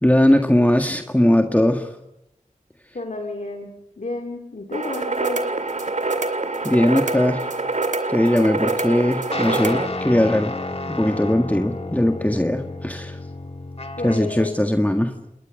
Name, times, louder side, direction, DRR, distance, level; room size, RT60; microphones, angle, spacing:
voice 1, 0.0-1.9 6.6-7.5 8.1-10.5 11.0-13.2 14.0-15.1, left 1 dB, 10° left, 4 dB, 1.7 m, -19 dB
voice 2, 2.9-3.7 4.0-5.4 14.0-14.5, left 2 dB, 75° left, 3 dB, 2.4 m, -31 dB
sound 1, 4.7-9.9, right 3 dB, 65° right, 2.2 m, -25 dB
sound 2, 9.3-14.5, left 2 dB, 50° left, 2.2 m, -31 dB
28.0 x 21.5 x 6.5 m, 0.84 s
wide cardioid pair, 45°, 13 cm